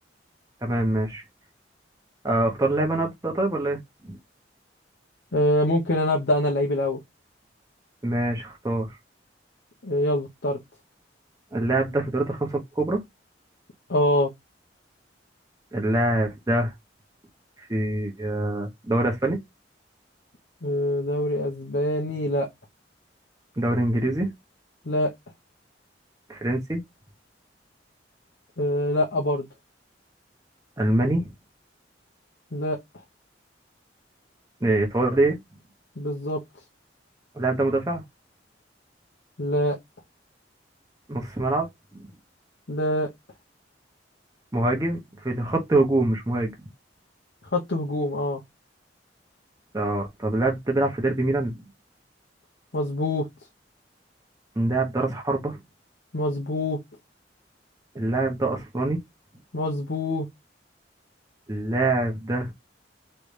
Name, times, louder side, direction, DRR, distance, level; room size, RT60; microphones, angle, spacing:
voice 1, 0.6-1.2 2.2-3.8 4.0-4.2 8.0-8.9 11.5-13.0 15.7-16.7 17.7-19.4 23.6-24.3 26.3-26.8 30.8-31.3 34.6-35.4 37.3-38.0 41.1-42.1 44.5-45.0 45.2-46.5 49.7-51.6 54.6-55.6 57.9-59.0 61.5-62.5, right 2 dB, 20° right, 1.1 m, -24 dB
voice 2, 5.3-7.0 9.8-10.6 13.9-14.3 20.6-22.5 24.8-25.1 28.6-29.5 32.5-32.8 36.0-36.4 39.4-39.8 42.7-43.1 47.5-48.4 52.7-53.3 56.1-56.8 59.5-60.3, left 1 dB, 65° left, 1.0 m, -24 dB
3.9 x 3.3 x 3.3 m
head